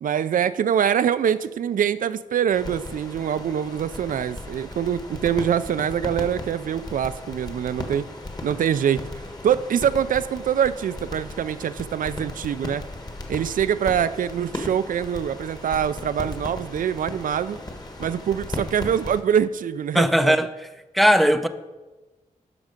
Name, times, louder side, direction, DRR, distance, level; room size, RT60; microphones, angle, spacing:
voice 1, 0.0-8.1 8.4-9.0 9.4-12.8 13.3-17.6 18.0-20.4, right 8 dB, 75° right, 0.4 m, -24 dB
sound 1, 2.5-19.2, left 2 dB, 30° left, 1.3 m, -36 dB
voice 2, 19.9-20.7 20.9-21.5, equal, ahead, 0.5 m, -18 dB
10.5 x 6.1 x 5.1 m
wide cardioid pair, 135°, 14 cm